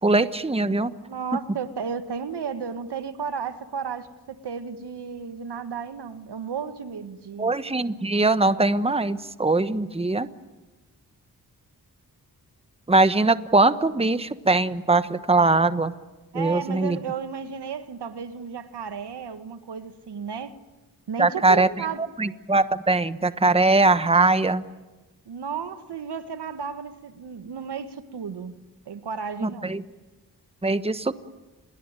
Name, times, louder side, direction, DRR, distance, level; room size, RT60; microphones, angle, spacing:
voice 1, 0.0-0.9 7.4-10.3 12.9-15.9 16.3-17.0 21.2-21.8 22.2-24.6 29.4-29.8 30.6-31.2, right 3 dB, 15° right, 12 dB, 1.2 m, -21 dB
voice 2, 1.1-7.5 16.3-20.5 21.1-22.0 25.2-28.5 28.9-29.7, right 6 dB, 85° right, 10 dB, 1.7 m, -33 dB
28.5 x 22.0 x 9.1 m, 1.2 s
cardioid pair, 65°, 40 cm